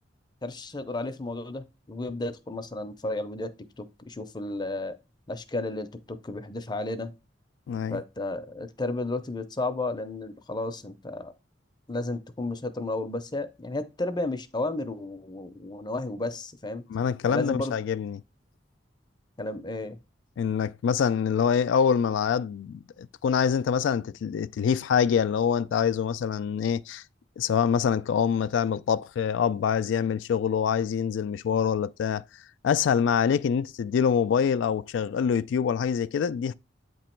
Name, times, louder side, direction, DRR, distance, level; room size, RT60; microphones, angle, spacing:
voice 1, 0.4-3.5 3.8-5.0 5.3-7.1 7.9-11.3 11.9-16.8 17.3-17.7 19.4-20.0, left 2 dB, 25° left, 0.5 m, -33 dB
voice 2, 7.7-8.0 16.9-18.2 20.4-27.0 27.4-32.2 32.6-36.5, left 7 dB, 80° left, 0.3 m, -25 dB
8.4 x 3.0 x 4.4 m
head